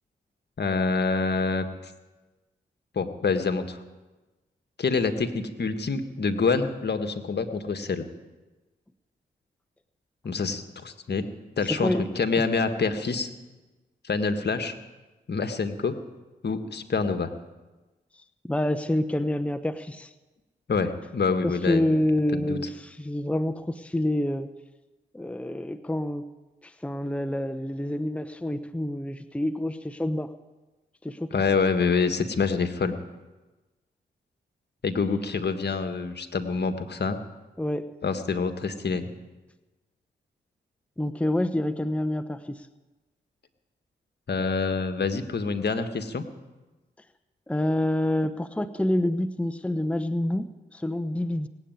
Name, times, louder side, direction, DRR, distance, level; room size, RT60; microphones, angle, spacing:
voice 1, 0.6-1.9 2.9-3.8 4.8-8.1 10.2-11.2 11.6-13.3 14.0-14.7 15.3-16.0 16.4-17.3 20.7-22.0 22.3-22.6 31.3-32.9 34.8-37.2 38.0-39.1 44.3-46.2, left 4 dB, 55° left, 8 dB, 1.6 m, -26 dB
voice 2, 11.6-12.1 12.3-12.4 18.1-20.1 21.4-24.5 25.1-26.3 26.6-30.3 31.0-31.3 37.6-37.9 41.0-42.7 47.5-51.5, left 1 dB, 5° left, 9 dB, 0.9 m, -27 dB
18.5 x 8.3 x 9.2 m, 1.2 s
supercardioid pair, 40°, 20 cm